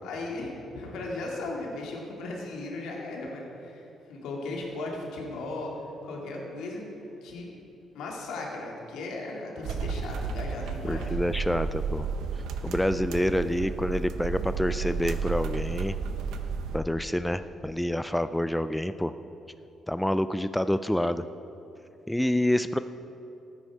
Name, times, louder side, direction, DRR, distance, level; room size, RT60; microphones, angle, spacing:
voice 1, 0.0-5.7 6.0-7.5 7.9-11.2, left 2 dB, 85° left, -1 dB, 2.2 m, -37 dB
sound 1, 9.6-16.8, right 5 dB, 80° right, 0.7 m, -32 dB
voice 2, 10.8-12.1 12.6-16.0 16.7-19.1 19.9-21.3 22.1-22.8, left 1 dB, 5° left, 11 dB, 0.3 m, -27 dB
13.0 x 9.7 x 4.7 m, 2.8 s
cardioid pair, 90°, 0 cm